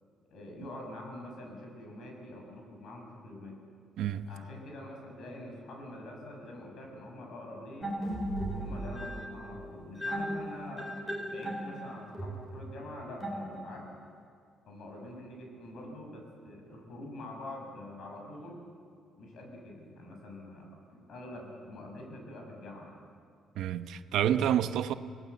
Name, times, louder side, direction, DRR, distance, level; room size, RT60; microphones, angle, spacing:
voice 1, 0.3-3.5 4.3-8.0 8.5-10.9 11.2-13.9 14.7-18.6 19.2-22.9, left 1 dB, 65° left, 6.8 m, -45 dB
sound 1, 7.8-14.0, equal, 5° left, 4.5 m, -37 dB
voice 2, 23.6-24.9, right 10 dB, 80° right, 0.9 m, -28 dB
28.0 x 18.5 x 8.1 m
cardioid pair, 115°, 0 cm